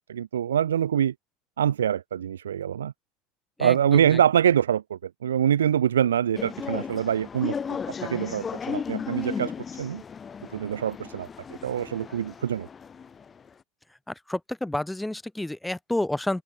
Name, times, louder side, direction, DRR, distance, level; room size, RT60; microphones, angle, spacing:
voice 1, 0.1-1.1 1.6-2.9 3.6-9.5 9.8-10.0 10.5-11.3 11.6-12.7, right 9 dB, 85° right, 0.3 m, -24 dB
sound 1, 6.4-13.5, left 6 dB, 30° left, 0.3 m, -35 dB
voice 2, 14.1-16.4, left 1 dB, 5° left, 0.7 m, -29 dB
hypercardioid pair, 85°, 0 cm